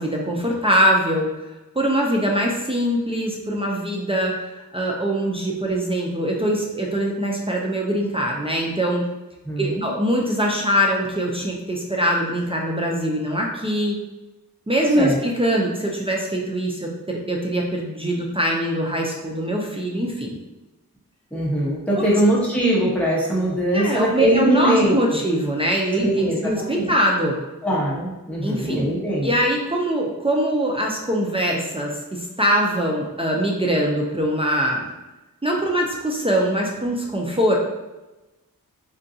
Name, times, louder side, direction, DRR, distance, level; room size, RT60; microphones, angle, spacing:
voice 1, 0.0-1.3 1.8-9.0 9.6-14.0 14.7-20.4 22.0-22.1 23.7-27.4 28.4-28.9 29.2-34.9 35.4-37.6, equal, 15° right, -2 dB, 0.4 m, -22 dB
voice 2, 9.4-9.9 15.0-15.2 21.3-25.2 26.0-26.4 26.7-26.9 27.6-29.3, right 1 dB, 5° left, -7 dB, 1.0 m, -21 dB
3.7 x 2.2 x 2.6 m, 1.1 s
wide cardioid pair, 90°, 36 cm